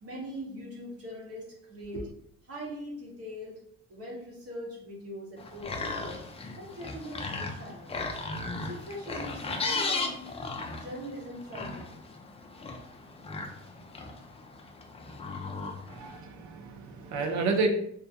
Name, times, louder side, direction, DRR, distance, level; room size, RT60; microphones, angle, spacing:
voice 1, 0.0-2.1 2.4-3.6 3.9-6.2 6.6-8.0 8.6-10.3 10.8-11.9, equal, 50° right, -3 dB, 1.1 m, -41 dB
sound 1, 5.4-16.2, left 3 dB, 20° left, 0.3 m, -36 dB
voice 2, 15.9-17.7, right 4 dB, 70° right, 4 dB, 0.6 m, -30 dB
2.3 x 2.1 x 2.7 m, 0.68 s
cardioid pair, 90°, 30 cm